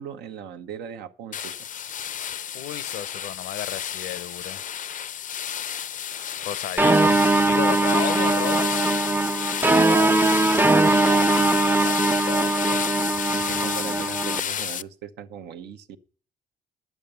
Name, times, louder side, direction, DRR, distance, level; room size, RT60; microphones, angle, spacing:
voice 1, 0.0-1.6 9.6-11.5 13.3-16.0, right 8 dB, 85° right, 0.9 m, -38 dB
sound 1, 1.3-14.8, left 9 dB, 50° left, 0.5 m, -31 dB
voice 2, 2.5-4.6 6.4-7.2 7.4-8.9 11.3-12.8, left 12 dB, 85° left, 0.8 m, -33 dB
sound 2, 6.8-14.4, right 2 dB, 10° right, 0.5 m, -21 dB
11.0 x 8.3 x 6.8 m
supercardioid pair, 65°, 17 cm